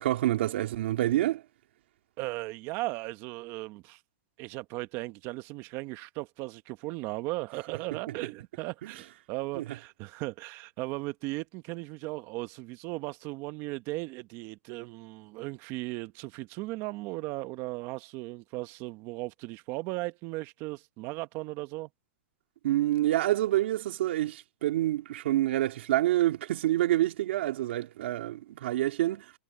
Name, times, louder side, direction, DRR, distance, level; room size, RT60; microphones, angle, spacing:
voice 1, 0.0-1.4 7.9-8.1 8.8-8.9 9.5-9.6 22.6-29.3, right 14 dB, 65° right, 2.9 m, -27 dB
voice 2, 2.2-4.0 4.4-21.9, right 21 dB, 40° right, 1.2 m, -37 dB
hypercardioid pair, 140°, 7 cm